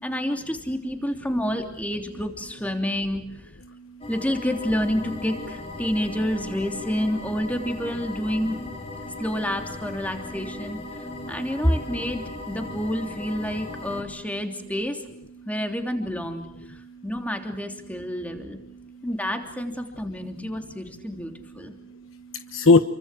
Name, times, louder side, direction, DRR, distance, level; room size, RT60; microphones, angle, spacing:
voice 1, 0.0-3.2 4.1-8.6 9.2-10.8 11.3-15.0 15.4-18.6 19.0-21.7, equal, 5° left, 4 dB, 3.2 m, -28 dB
voice 2, 3.7-4.1 9.0-9.2 10.9-11.3 16.8-17.1 18.8-19.1 21.4-22.8, left 3 dB, 75° left, 10 dB, 1.1 m, -24 dB
sound 1, 4.0-14.0, left 2 dB, 30° left, 4.6 m, -37 dB
29.5 x 24.0 x 7.6 m, 0.72 s
head